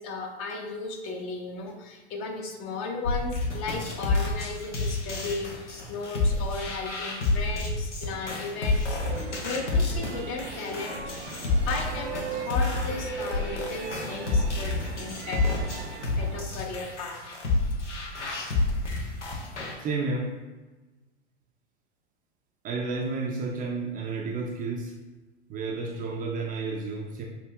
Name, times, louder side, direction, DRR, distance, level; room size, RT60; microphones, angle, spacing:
voice 1, 0.0-11.2 11.6-15.9 16.2-17.2, left 3 dB, 40° left, 2 dB, 0.8 m, -35 dB
sound 1, 3.0-19.7, left 3 dB, 85° left, 0.9 m, -29 dB
sound 2, 9.0-16.4, right 4 dB, 75° right, 0.7 m, -38 dB
voice 2, 19.8-20.3 22.6-24.9 25.5-27.3, right 3 dB, 25° right, -1 dB, 0.5 m, -31 dB
6.0 x 2.8 x 2.2 m, 1.2 s
hypercardioid pair, 100°, 34 cm